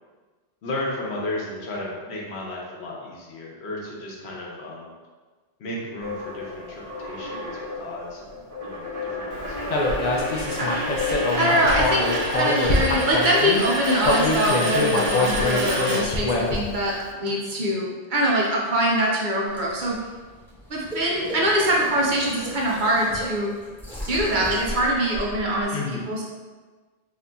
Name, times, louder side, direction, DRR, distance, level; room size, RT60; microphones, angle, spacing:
voice 1, 0.6-4.9 5.6-10.1 25.7-26.1, left 2 dB, 85° left, -3 dB, 1.0 m, -34 dB
sound 1, 6.0-16.6, left 1 dB, 35° right, 0.9 m, -29 dB
Human voice, 9.7-13.6 14.0-16.7, left 2 dB, 55° left, 0.5 m, -24 dB
voice 2, 11.4-20.0 20.7-23.5 24.1-26.2, right 1 dB, 60° right, -3 dB, 0.6 m, -23 dB
sound 2, 19.5-25.6, left 1 dB, ahead, 0.7 m, -37 dB
3.8 x 2.8 x 2.2 m, 1.4 s
omnidirectional pair, 1.1 m